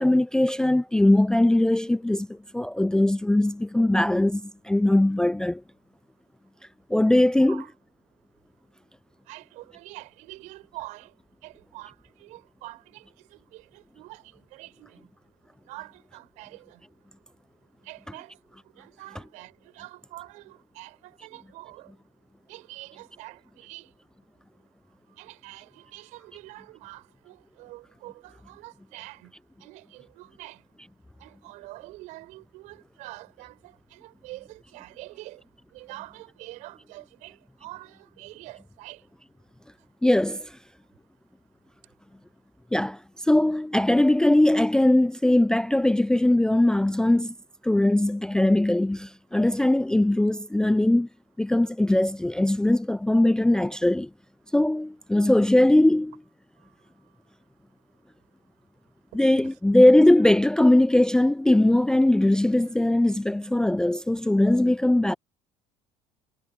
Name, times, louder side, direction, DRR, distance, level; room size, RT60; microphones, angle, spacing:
voice 1, 0.0-5.6 6.9-7.7 18.1-18.2 19.1-19.2 40.0-40.5 42.7-47.3 47.6-51.1 51.4-54.1 54.5-56.2 59.1-65.1, left 1 dB, 5° left, 0.3 m, -20 dB
voice 2, 7.4-7.7 9.3-11.1 11.4-11.9 12.2-13.0 13.3-15.0 15.7-16.8 17.8-18.4 18.8-21.9 22.5-23.9 25.2-29.3 29.6-30.6 31.2-35.4 35.7-39.0 59.4-59.5 60.2-60.3, right 20 dB, 75° right, 4.8 m, -45 dB
supercardioid pair, 85°, 13 cm